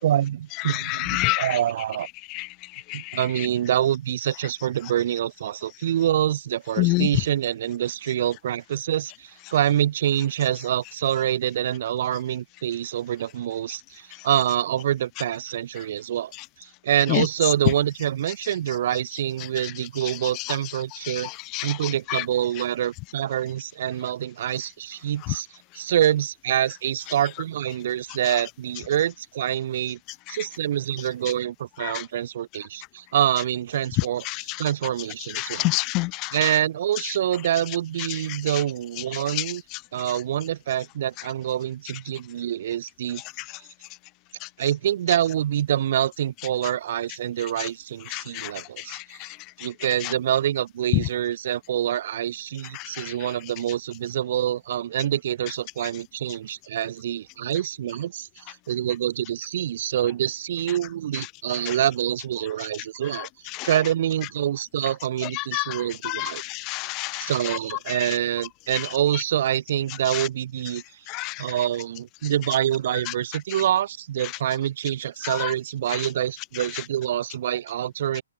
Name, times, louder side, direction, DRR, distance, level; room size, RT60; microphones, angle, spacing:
voice 1, 0.0-2.1 2.9-16.3 16.6-21.3 21.6-25.5 25.7-30.0 30.3-35.7 36.3-39.6 39.9-43.2 44.6-49.2 49.6-63.3 63.6-66.4 67.2-70.8 71.4-78.2, right 11 dB, 35° right, 3.0 m, -26 dB
voice 2, 1.1-1.4 2.3-2.4 6.8-7.1 21.5-21.7 22.1-22.2 35.4-36.3 48.1-48.5 63.6-63.7 65.5-65.6 66.1-67.3 71.1-71.3, left 24 dB, 15° left, 0.7 m, -26 dB
open air
hypercardioid pair, 170°, 0 cm